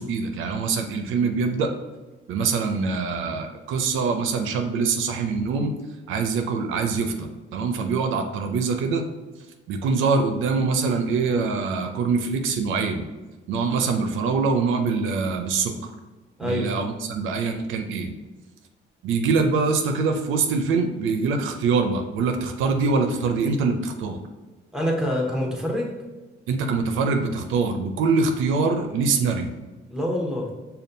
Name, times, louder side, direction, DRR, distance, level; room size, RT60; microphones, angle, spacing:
voice 1, 0.0-1.7 2.3-5.7 6.1-9.0 9.7-13.0 13.5-15.8 16.4-18.1 19.0-24.2 26.5-29.5, right 4 dB, 85° right, 5 dB, 0.4 m, -24 dB
voice 2, 16.4-16.7 24.7-25.9 29.9-30.5, left 1 dB, 5° right, -1 dB, 0.9 m, -26 dB
5.2 x 2.3 x 2.6 m, 1.2 s
cardioid pair, 90°, 20 cm